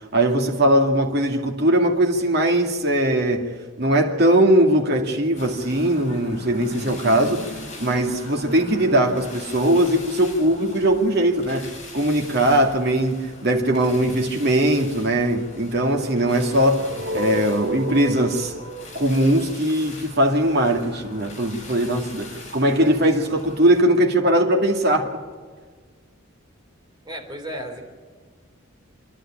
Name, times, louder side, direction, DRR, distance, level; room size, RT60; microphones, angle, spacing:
voice 1, 0.1-11.7 11.9-18.5 18.9-25.1, right 1 dB, 50° right, 2.4 m, -20 dB
sound 1, 5.4-23.8, left 2 dB, 35° left, 5.7 m, -42 dB
sound 2, 16.2-20.3, right 3 dB, 70° right, 1.6 m, -33 dB
voice 2, 27.1-27.8, equal, 20° right, 3.5 m, -33 dB
27.0 x 11.5 x 8.8 m
head